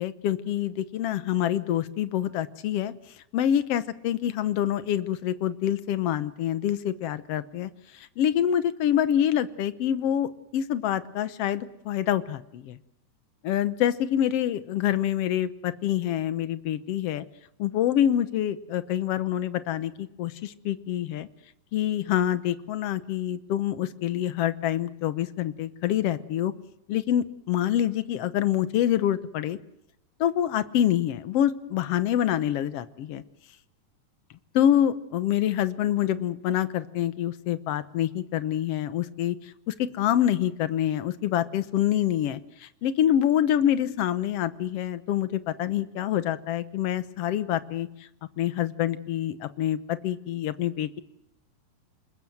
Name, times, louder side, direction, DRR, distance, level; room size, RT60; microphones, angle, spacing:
voice 1, 0.0-2.9 3.3-12.8 13.4-17.2 17.6-21.3 21.7-26.5 26.9-29.6 30.2-33.2 34.5-39.4 39.7-47.9 48.4-51.0, left 11 dB, 65° left, 13 dB, 1.6 m, -26 dB
27.5 x 20.5 x 7.8 m, 0.80 s
omnidirectional pair, 3.8 m